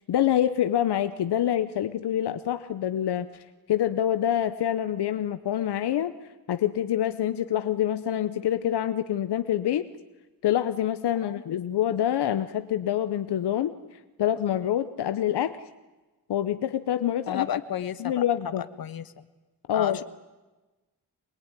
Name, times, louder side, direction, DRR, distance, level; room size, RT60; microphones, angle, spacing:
voice 1, 0.1-3.3 3.7-6.1 6.5-9.9 10.4-13.7 14.2-15.6 16.3-17.5 18.0-18.6 19.7-20.0, left 11 dB, 85° left, 11 dB, 0.9 m, -26 dB
voice 2, 17.3-18.2 18.6-19.0 19.7-20.0, left 9 dB, 65° left, 12 dB, 1.3 m, -32 dB
24.5 x 21.5 x 9.8 m, 1.2 s
wide cardioid pair, 130°, 39 cm